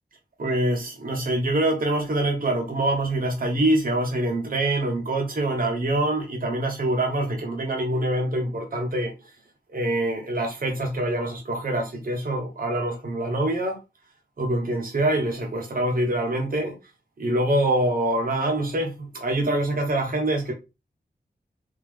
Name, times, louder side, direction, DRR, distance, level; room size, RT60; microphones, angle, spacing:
voice 1, 0.4-9.1 9.7-13.8 14.4-16.7 17.2-20.5, right 1 dB, 55° right, 1.1 m, -25 dB
3.8 x 2.8 x 3.3 m
cardioid pair, 50°, 17 cm